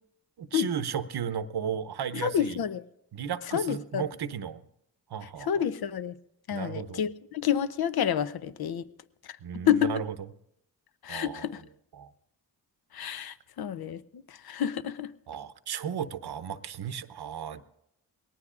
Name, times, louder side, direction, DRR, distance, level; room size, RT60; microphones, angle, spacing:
voice 1, 0.4-2.6 3.1-4.6 5.1-5.6 6.5-7.0 9.4-10.2 11.1-11.5 11.9-12.1 15.3-17.6, right 8 dB, 70° right, 13 dB, 0.8 m, -34 dB
voice 2, 2.1-2.8 3.5-4.0 5.5-6.1 6.5-8.8 9.7-9.9 11.0-11.6 12.9-14.0 14.4-15.1, left 9 dB, 65° left, 14 dB, 0.7 m, -28 dB
21.5 x 18.0 x 2.5 m, 0.77 s
cardioid pair, 50°, 41 cm